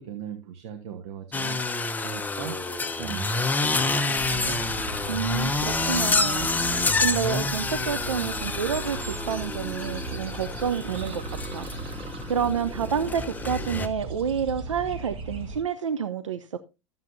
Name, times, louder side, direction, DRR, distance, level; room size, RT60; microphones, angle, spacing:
voice 1, 0.0-1.6 2.0-2.6 2.9-4.6, right 8 dB, 60° right, 1.2 m, -39 dB
sound 1, 1.3-13.9, left 3 dB, 10° left, 0.8 m, -28 dB
sound 2, 4.1-15.6, right 3 dB, 35° right, 1.8 m, -37 dB
voice 2, 5.1-6.7 7.0-11.2 11.5-11.7 12.3-16.6, right 7 dB, 85° right, 0.6 m, -29 dB
13.5 x 7.3 x 2.7 m
hypercardioid pair, 90°, 16 cm